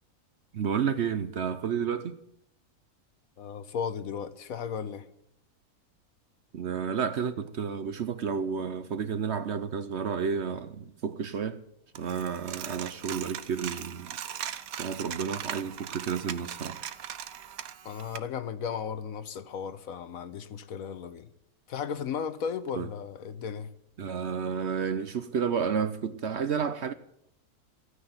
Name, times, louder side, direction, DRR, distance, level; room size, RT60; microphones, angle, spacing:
voice 1, 0.5-2.2 6.5-11.6 12.0-14.2 14.4-16.8 22.8-22.9 24.0-26.9, right 6 dB, 55° right, 0.9 m, -31 dB
voice 2, 3.4-5.1 17.8-21.3 21.7-23.7, left 7 dB, 70° left, 1.3 m, -35 dB
Coin (dropping), 12.0-18.2, right 10 dB, 75° right, 1.2 m, -39 dB
14.5 x 9.7 x 9.4 m
omnidirectional pair, 1.6 m